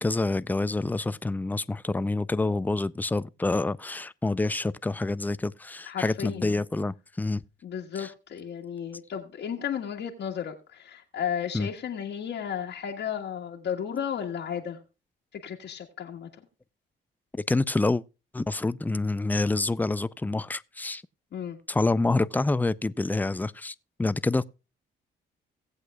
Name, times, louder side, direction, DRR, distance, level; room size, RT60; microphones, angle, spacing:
voice 1, 0.0-7.4 8.0-8.1 11.5-11.7 17.5-18.0 18.3-21.0 21.7-24.4, left 2 dB, 10° left, 0.4 m, -27 dB
voice 2, 5.8-6.6 7.6-14.8 15.3-16.3 21.3-21.6, left 8 dB, 65° left, 1.5 m, -34 dB
18.0 x 8.1 x 2.3 m
cardioid pair, 90°, 20 cm